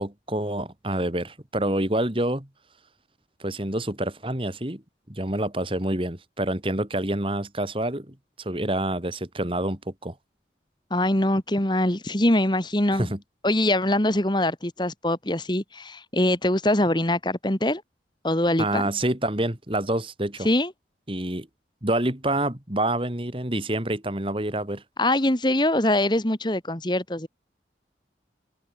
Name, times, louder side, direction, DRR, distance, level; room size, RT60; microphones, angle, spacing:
voice 1, 0.0-2.5 3.4-4.8 5.1-10.1 12.9-13.2 18.6-20.5 21.1-21.5 21.8-24.8, right 1 dB, 30° right, 2.5 m, -27 dB
voice 2, 10.9-13.1 13.4-17.8 18.2-18.8 20.4-20.7 25.0-27.3, left 1 dB, 25° left, 1.8 m, -23 dB
head